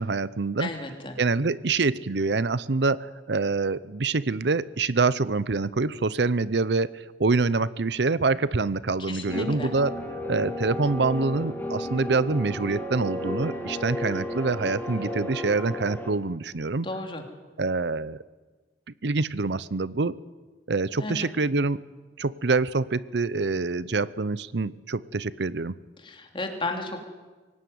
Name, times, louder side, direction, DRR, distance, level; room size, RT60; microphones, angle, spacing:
voice 1, 0.0-0.7 1.2-9.9 10.2-16.9 17.6-18.2 19.0-20.2 20.7-21.8 22.2-25.7, right 3 dB, 70° right, 18 dB, 0.7 m, -26 dB
voice 2, 0.6-1.2 9.0-9.7 16.8-17.2 21.0-21.3 26.0-27.1, left 2 dB, 30° left, 3 dB, 3.0 m, -33 dB
sound 1, 9.3-16.1, left 1 dB, 10° left, 3.2 m, -33 dB
24.0 x 18.0 x 9.5 m, 1.3 s
head